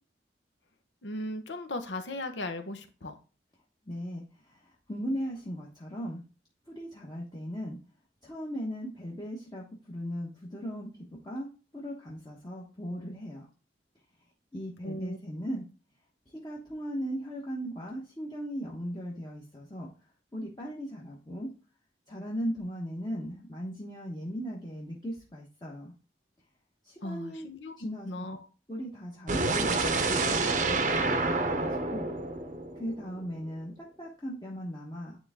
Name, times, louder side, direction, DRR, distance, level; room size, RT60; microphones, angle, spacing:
voice 1, 1.0-3.2 14.8-15.2 27.0-27.7 28.0-28.4, left 1 dB, 80° left, 7 dB, 1.1 m, -37 dB
voice 2, 3.9-6.2 6.7-7.8 8.2-11.5 11.7-13.5 14.5-15.7 16.3-19.9 20.3-21.5 22.1-25.9 26.8-27.5 27.8-28.2 28.7-32.1 32.7-35.2, equal, 20° left, -4 dB, 1.2 m, -38 dB
sound 1, 29.3-33.3, right 3 dB, 40° right, 0.7 m, -28 dB
9.7 x 3.7 x 3.6 m, 0.35 s
head